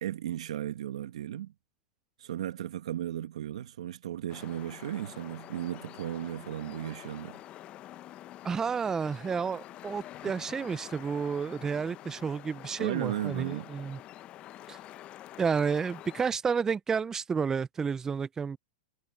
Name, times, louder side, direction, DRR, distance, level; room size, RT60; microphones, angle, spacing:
voice 1, 0.0-1.5 2.2-7.4 12.8-13.7, right 11 dB, 80° right, 1.6 m, -35 dB
sound 1, 4.3-16.3, left 13 dB, 35° left, 0.8 m, -47 dB
voice 2, 8.4-14.0 14.7-14.8 15.4-18.6, right 6 dB, 15° right, 0.4 m, -31 dB
hypercardioid pair, 125°, 3 cm